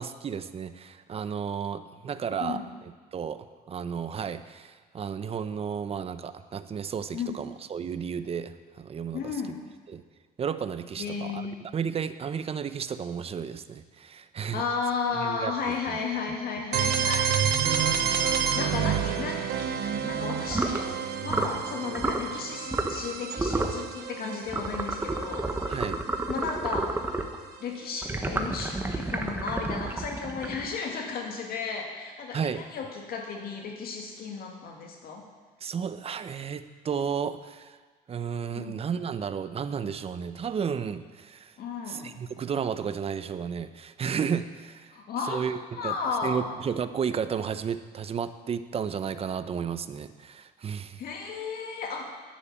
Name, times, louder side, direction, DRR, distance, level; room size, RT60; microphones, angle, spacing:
voice 1, 0.0-9.3 9.9-10.0 10.4-14.6 15.2-16.0 25.7-26.0 32.3-32.6 35.6-37.8 38.1-41.5 41.9-44.9 45.3-45.9 46.2-51.0, right 7 dB, 35° right, 12 dB, 0.7 m, -33 dB
voice 2, 9.1-9.6 11.0-11.6 14.5-21.0 21.2-25.5 26.3-26.9 27.6-35.2 38.6-38.8 41.6-42.2 44.9-46.5 51.0-52.1, left 5 dB, 60° left, 1 dB, 2.0 m, -34 dB
sound 1, 16.7-26.5, right 8 dB, 70° right, 1.2 m, -29 dB
sound 2, 20.5-20.8 21.3-21.6 21.9-22.2 22.7-23.1 23.4-23.8 24.5-27.4 28.0-30.8, right 2 dB, 15° right, 1.3 m, -30 dB
10.5 x 9.5 x 8.7 m, 1.4 s
cardioid pair, 110°, 17 cm